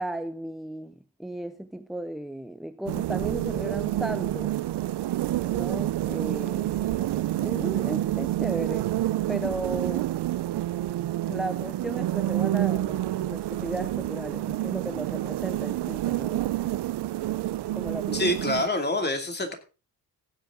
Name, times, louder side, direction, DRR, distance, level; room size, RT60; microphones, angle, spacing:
voice 1, 0.0-4.5 5.5-8.9 9.3-10.1 11.3-16.5 17.7-18.3, right 1 dB, ahead, 0.5 m, -35 dB
sound 1, 2.9-18.7, right 14 dB, 85° right, 0.6 m, -28 dB
voice 2, 18.1-19.5, left 1 dB, 25° left, 2.5 m, -26 dB
15.5 x 8.4 x 3.7 m
wide cardioid pair, 130°, 39 cm